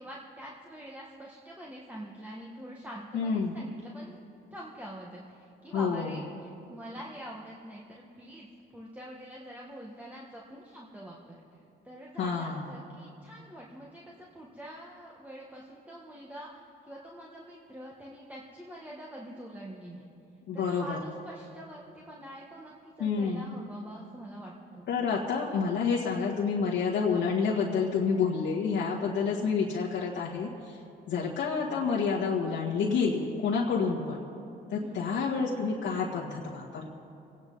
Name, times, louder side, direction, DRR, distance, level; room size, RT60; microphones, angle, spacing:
voice 1, 0.0-4.2 4.5-8.5 8.7-11.4 11.8-20.1 20.5-24.8 34.8-35.1, right 1 dB, 10° right, -3 dB, 1.6 m, -45 dB
voice 2, 3.1-3.6 5.7-6.2 12.2-12.7 20.5-21.0 23.0-23.5 24.9-30.8 31.1-34.2 34.7-36.9, left 5 dB, 75° left, -5 dB, 1.8 m, -29 dB
24.0 x 9.8 x 4.0 m, 2.7 s
cardioid pair, 90°, 20 cm